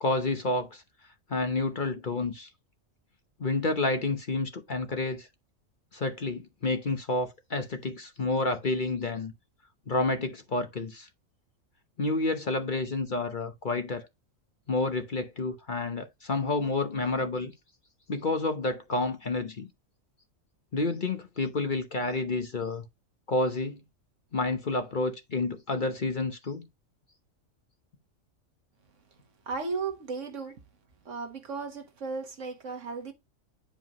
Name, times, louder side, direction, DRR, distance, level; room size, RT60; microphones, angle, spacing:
voice 1, 0.0-0.8 1.3-2.5 3.4-5.3 5.9-9.3 9.9-11.1 12.0-14.1 14.7-17.5 18.1-19.7 20.7-22.8 23.3-23.8 24.3-26.7, left 2 dB, 40° left, 0.9 m, -29 dB
voice 2, 29.4-30.6 31.0-33.1, right 4 dB, 65° right, 1.7 m, -35 dB
9.4 x 5.1 x 3.0 m
omnidirectional pair, 1.4 m